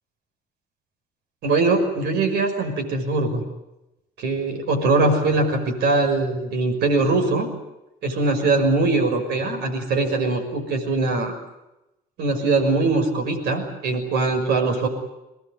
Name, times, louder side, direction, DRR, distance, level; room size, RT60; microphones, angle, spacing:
voice 1, 1.4-3.4 4.2-7.5 8.0-11.3 12.2-14.9, right 3 dB, 75° right, 5 dB, 5.8 m, -21 dB
23.0 x 19.5 x 9.6 m, 0.94 s
cardioid pair, 110°, 17 cm